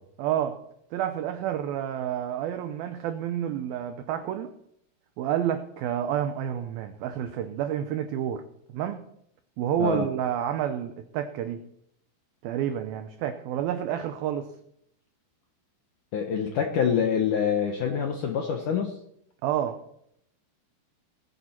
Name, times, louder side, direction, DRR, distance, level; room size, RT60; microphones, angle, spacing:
voice 1, 0.2-0.6 0.9-4.5 5.2-8.4 8.7-9.0 9.6-11.7 12.4-14.5 19.4-19.8, right 10 dB, 85° right, 9 dB, 2.1 m, -29 dB
voice 2, 16.1-19.0, left 7 dB, 75° left, 3 dB, 1.9 m, -26 dB
19.0 x 9.3 x 4.4 m, 0.75 s
omnidirectional pair, 5.1 m